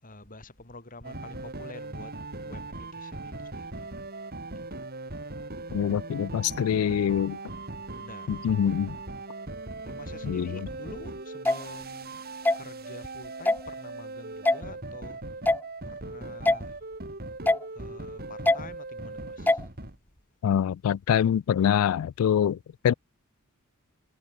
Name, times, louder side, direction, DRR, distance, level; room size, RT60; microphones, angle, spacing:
voice 1, 0.0-2.2 2.4-3.8 4.7-4.8 8.0-8.6 9.8-12.2 12.6-15.2 15.8-16.8 17.7-19.9, left 2 dB, 40° left, 6.9 m, -47 dB
sound 1, 1.0-19.9, right 2 dB, 45° right, 5.6 m, -39 dB
voice 2, 5.7-7.4 8.3-9.0 10.2-10.5 20.4-22.6 22.8-22.9, left 9 dB, 70° left, 0.3 m, -24 dB
sound 2, 11.5-11.6 12.5-12.6 13.5-13.6 14.5-14.6 15.5-15.6 16.5-16.6 17.5-17.6 18.5-18.6 19.5-19.6, left 2 dB, 10° left, 0.6 m, -21 dB
head